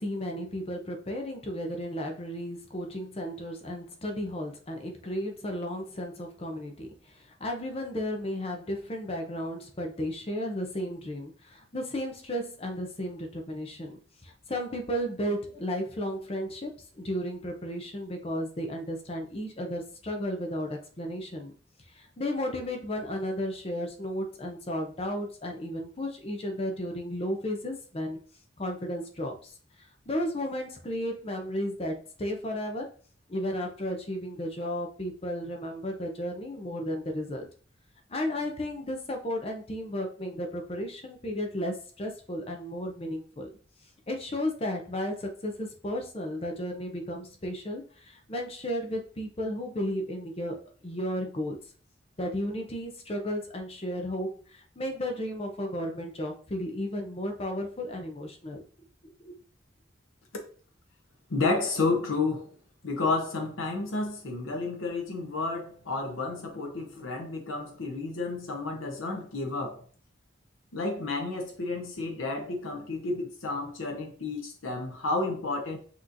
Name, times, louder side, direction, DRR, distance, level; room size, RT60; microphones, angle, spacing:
voice 1, 0.0-21.5 21.9-28.2 28.6-32.9 33.3-37.5 38.1-43.5 44.1-51.6 52.2-58.6 59.2-59.3, equal, 30° left, 0.6 m, -34 dB
voice 2, 61.3-62.5 62.8-69.8 70.7-75.8, left 3 dB, 90° left, 0.9 m, -31 dB
6.0 x 3.0 x 2.6 m
head